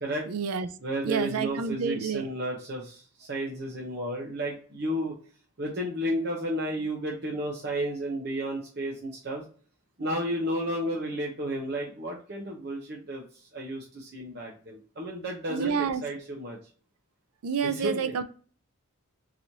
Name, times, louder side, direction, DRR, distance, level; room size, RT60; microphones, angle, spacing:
voice 1, 0.3-0.7 1.0-2.3 15.5-16.0 17.4-18.2, right 6 dB, 85° right, 0.4 m, -29 dB
voice 2, 0.8-5.1 5.6-9.4 10.0-13.2 13.5-16.6 17.6-18.1, equal, 50° right, 0.8 m, -32 dB
4.0 x 3.0 x 2.7 m
head